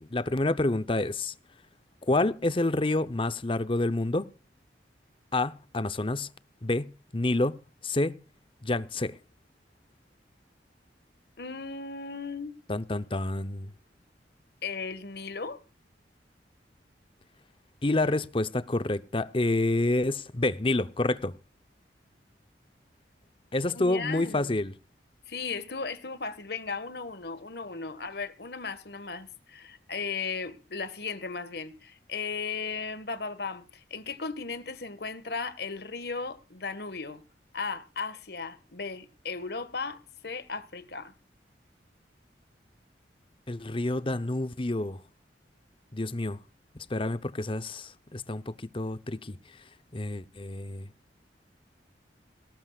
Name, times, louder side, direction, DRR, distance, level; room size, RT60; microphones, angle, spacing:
voice 1, 0.0-1.3 2.1-4.3 5.3-6.3 6.6-7.6 7.8-8.2 8.6-9.1 12.7-13.7 17.8-21.3 23.5-24.7 43.5-45.0 45.9-46.4 46.9-49.4 49.9-50.9, left 2 dB, 30° left, 0.8 m, -28 dB
voice 2, 11.4-12.5 14.6-15.6 23.7-24.6 25.3-37.2 37.5-41.1, left 4 dB, 60° left, 1.7 m, -36 dB
18.5 x 18.5 x 2.4 m
head